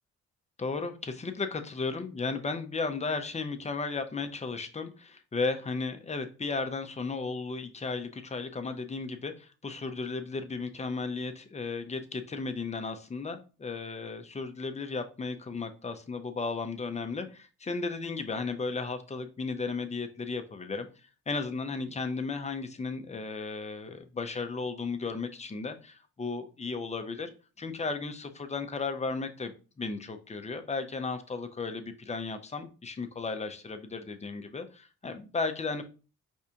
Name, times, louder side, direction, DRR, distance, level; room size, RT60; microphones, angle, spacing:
voice 1, 0.6-20.9 21.3-27.3 27.6-35.8, left 4 dB, 20° left, 8 dB, 0.7 m, -35 dB
4.8 x 3.5 x 2.8 m, 0.33 s
cardioid pair, 90°, 30 cm